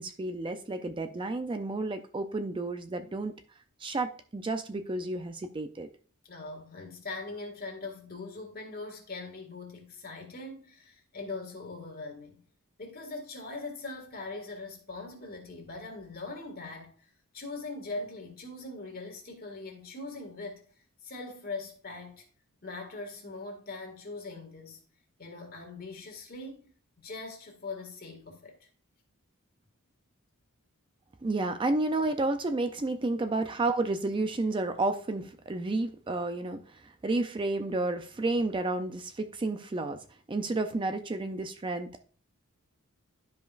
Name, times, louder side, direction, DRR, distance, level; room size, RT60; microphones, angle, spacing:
voice 1, 0.0-3.3 3.8-5.9 31.2-42.0, right 2 dB, 25° right, 0.4 m, -31 dB
voice 2, 6.3-12.4 12.8-17.1 17.3-20.6 21.0-22.2 22.6-24.8 25.2-26.7 27.0-28.5, left 3 dB, 45° left, 1.9 m, -41 dB
11.5 x 5.1 x 2.5 m
head